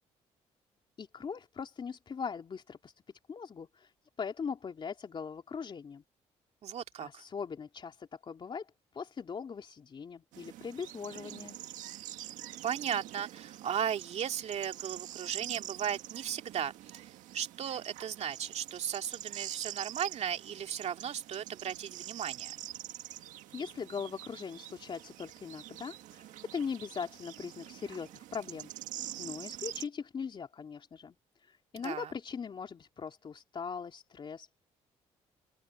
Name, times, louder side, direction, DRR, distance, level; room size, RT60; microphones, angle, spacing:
voice 1, 1.0-2.9 3.3-6.0 7.0-11.6 23.1-34.7, left 6 dB, 40° left, 3.2 m, -41 dB
voice 2, 6.6-7.1 12.6-17.1 17.3-22.5 31.7-32.1, right 9 dB, 60° right, 2.4 m, -36 dB
sound 1, 10.3-29.9, right 14 dB, 85° right, 1.7 m, -45 dB
open air
cardioid pair, 90°, 13 cm